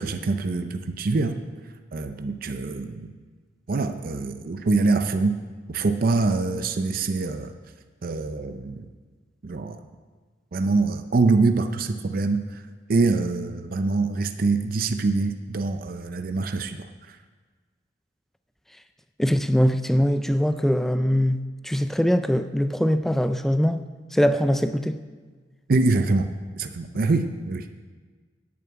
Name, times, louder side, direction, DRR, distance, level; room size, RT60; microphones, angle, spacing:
voice 1, 0.0-1.4 1.9-3.1 3.7-5.4 5.7-7.5 8.0-8.9 9.4-9.8 10.5-12.6 12.9-17.2 25.7-26.3 26.6-27.7, right 3 dB, 50° right, 8 dB, 0.5 m, -24 dB
voice 2, 19.2-23.8 24.1-25.0, equal, ahead, 10 dB, 0.3 m, -22 dB
8.7 x 7.2 x 8.6 m, 1.5 s
head